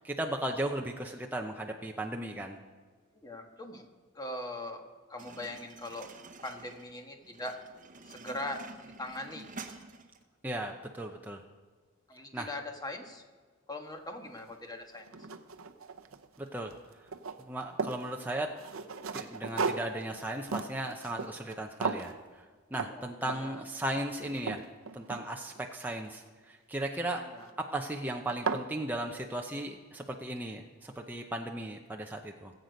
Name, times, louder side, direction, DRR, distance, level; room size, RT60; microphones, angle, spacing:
voice 1, 0.0-2.6 10.4-11.4 12.3-12.5 16.4-16.7 17.4-18.5 19.1-22.4 22.7-24.6 24.9-27.3 27.6-32.5, right 1 dB, 10° right, 2 dB, 0.6 m, -36 dB
voice 2, 3.1-3.9 4.1-6.1 6.4-7.6 8.0-9.6 12.1-13.2 13.7-15.1 22.8-23.6 27.2-27.5, left 1 dB, 20° left, 4 dB, 1.3 m, -41 dB
sound 1, 5.2-10.2, right 3 dB, 40° right, 0.9 m, -49 dB
sound 2, 14.4-14.5 15.0-16.4 16.7-18.1 18.6-21.6 21.8-22.2 22.7-22.9 23.3-23.6 24.0-25.6 27.1-27.5 28.0-28.1 28.3-28.7, right 4 dB, 80° right, 0.8 m, -36 dB
18.5 x 8.1 x 5.2 m, 1.5 s
head